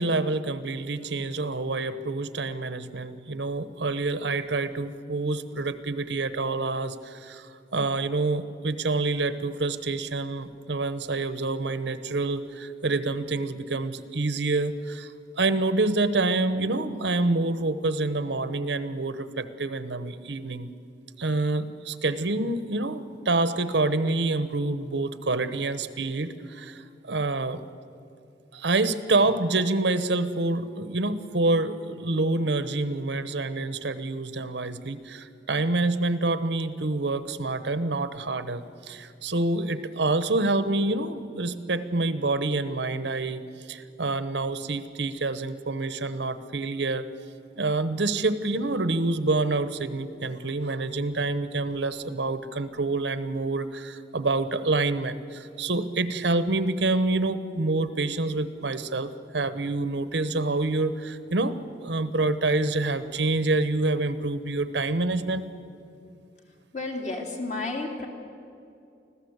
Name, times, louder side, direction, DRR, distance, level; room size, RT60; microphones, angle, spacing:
voice 1, 0.0-15.1 15.4-20.7 21.2-27.6 28.5-43.4 43.7-47.1 47.6-65.5, right 2 dB, 80° right, 13 dB, 1.0 m, -27 dB
voice 2, 66.7-68.1, left 2 dB, 40° left, 2 dB, 2.8 m, -31 dB
25.0 x 15.5 x 8.1 m, 2.6 s
head